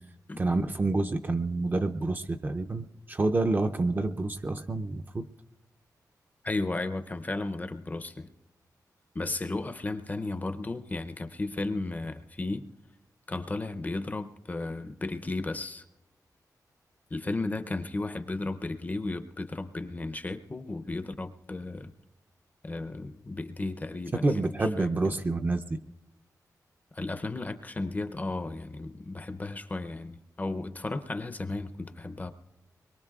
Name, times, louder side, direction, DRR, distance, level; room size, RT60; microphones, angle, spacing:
voice 1, 0.4-5.3 24.2-25.8, right 2 dB, 30° right, 6 dB, 0.5 m, -28 dB
voice 2, 6.4-8.3 9.1-12.7 13.3-15.8 17.1-22.0 22.6-24.9 26.9-32.3, left 2 dB, 25° left, 8 dB, 0.5 m, -34 dB
24.5 x 22.0 x 2.3 m, 1.0 s
wide cardioid pair, 155°, 7 cm